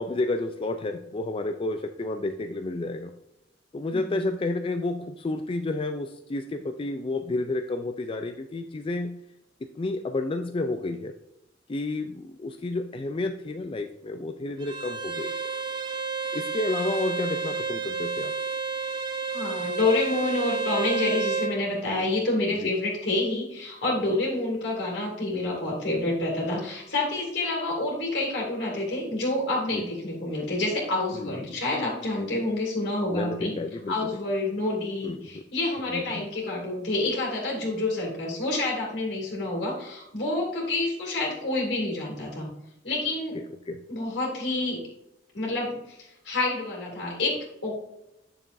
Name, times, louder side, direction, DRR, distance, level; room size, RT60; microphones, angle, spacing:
voice 1, 0.0-3.1 3.7-9.2 9.8-11.1 11.7-15.3 16.3-18.3 22.6-22.7 24.1-24.2 29.7-29.8 31.1-31.4 33.1-34.2 35.0-35.4 35.9-36.3 43.3-43.8, left 2 dB, 30° left, 7 dB, 0.4 m, -31 dB
Bowed string instrument, 14.6-21.6, right 4 dB, 25° right, 0.7 m, -30 dB
voice 2, 19.3-33.5 33.9-42.5 42.8-43.4 43.9-44.8 45.3-47.7, left 2 dB, 80° left, -3 dB, 2.8 m, -28 dB
8.2 x 6.9 x 2.6 m, 0.87 s
head